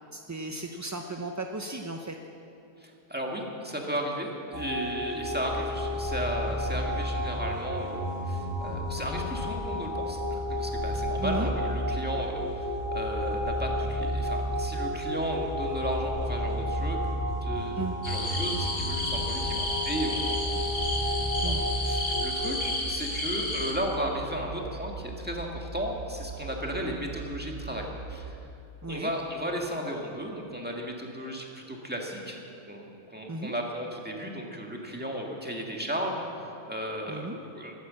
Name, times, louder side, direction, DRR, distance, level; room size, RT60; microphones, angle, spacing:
voice 1, 0.1-2.2 11.2-11.5 17.8-18.0 21.4-21.6 28.8-29.1 33.3-33.5 37.1-37.4, right 2 dB, 25° right, 3 dB, 0.4 m, -35 dB
voice 2, 2.8-17.0 17.3-17.8 18.0-28.4 28.9-32.4 32.7-37.7, equal, 10° right, 0 dB, 1.7 m, -35 dB
sound 1, 4.5-22.7, left 1 dB, 70° left, 3.5 m, -31 dB
sound 2, 10.9-28.3, right 4 dB, 50° right, 0.8 m, -41 dB
sound 3, 18.0-23.7, left 2 dB, 50° left, 2.0 m, -32 dB
13.0 x 12.5 x 7.5 m, 2.7 s
omnidirectional pair, 1.2 m